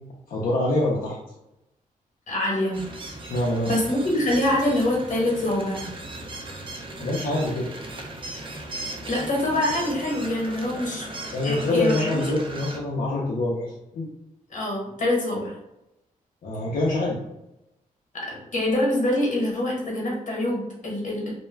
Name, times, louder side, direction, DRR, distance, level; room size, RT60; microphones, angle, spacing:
voice 1, 0.3-1.2 3.2-3.7 7.0-7.7 10.7-10.9 11.3-14.1 16.4-17.2, left 2 dB, 80° left, -5 dB, 0.5 m, -25 dB
voice 2, 2.3-2.8 3.7-5.9 9.1-11.0 11.4-12.2 14.5-15.6 18.1-21.3, left 1 dB, 60° left, -2 dB, 1.0 m, -25 dB
sound 1, 2.7-12.8, right 2 dB, 35° right, 0.4 m, -37 dB
2.2 x 2.1 x 3.2 m, 0.88 s
cardioid pair, 105°, 14 cm